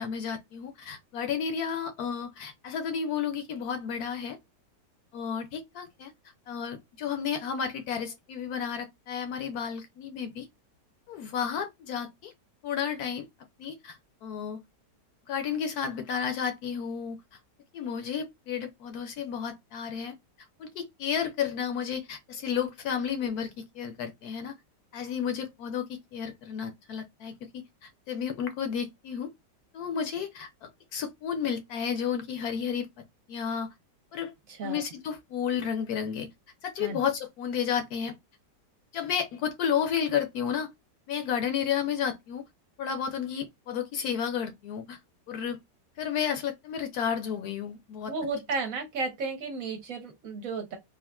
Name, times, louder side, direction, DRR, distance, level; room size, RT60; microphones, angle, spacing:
voice 1, 0.0-4.4 5.1-6.1 6.5-10.5 11.1-12.3 12.6-13.3 13.6-14.6 15.3-17.2 17.7-20.1 20.6-24.5 24.9-29.3 29.7-32.9 33.3-33.7 34.1-34.3 34.6-36.3 36.6-38.1 38.9-40.7 41.1-42.4 42.8-45.0 45.3-45.6 46.0-48.1, left 7 dB, 70° left, 1.0 m, -32 dB
voice 2, 34.5-34.8 36.8-37.0 48.1-50.8, right 3 dB, 60° right, 1.1 m, -33 dB
3.5 x 2.4 x 2.2 m
omnidirectional pair, 1.9 m